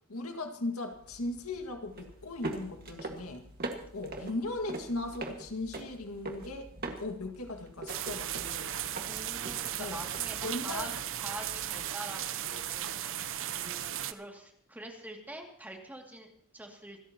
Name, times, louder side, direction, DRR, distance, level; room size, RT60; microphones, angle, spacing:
voice 1, 0.1-3.4 3.9-6.7 7.0-8.7 9.8-10.0 10.4-11.0, left 2 dB, 85° left, 5 dB, 1.9 m, -38 dB
sound 1, 0.9-11.8, right 2 dB, 45° right, 1.8 m, -43 dB
sound 2, 7.9-14.1, right 11 dB, 65° right, 0.7 m, -36 dB
voice 2, 9.1-10.9 11.2-12.9 13.5-17.1, right 1 dB, 10° right, 1 dB, 2.4 m, -45 dB
26.5 x 13.5 x 2.9 m, 0.69 s
head